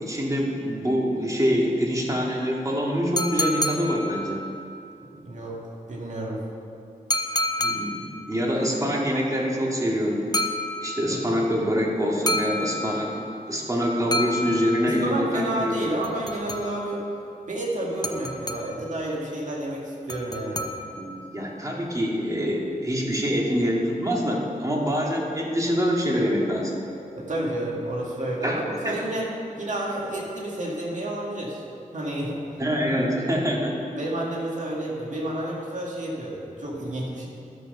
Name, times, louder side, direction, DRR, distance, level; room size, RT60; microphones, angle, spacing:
voice 1, 0.0-4.4 7.6-10.3 10.8-13.2 13.5-15.8 20.9-26.7 28.4-28.6 28.8-29.0 32.6-33.8, equal, 20° right, -2 dB, 2.1 m, -25 dB
sound 1, 3.2-4.6 7.1-8.3 10.3-11.2 12.3-13.3 14.1-15.1 16.0-17.0 18.0-19.0 20.1-21.2, left 1 dB, 25° left, 0.9 m, -29 dB
voice 2, 5.1-5.6 5.9-6.4 11.1-11.2 14.8-17.0 17.5-20.7 27.2-29.3 29.6-31.6 31.9-32.4 33.9-37.3, right 1 dB, 55° right, -3 dB, 2.1 m, -30 dB
12.5 x 7.0 x 5.6 m, 2.7 s
wide cardioid pair, 75°, 15 cm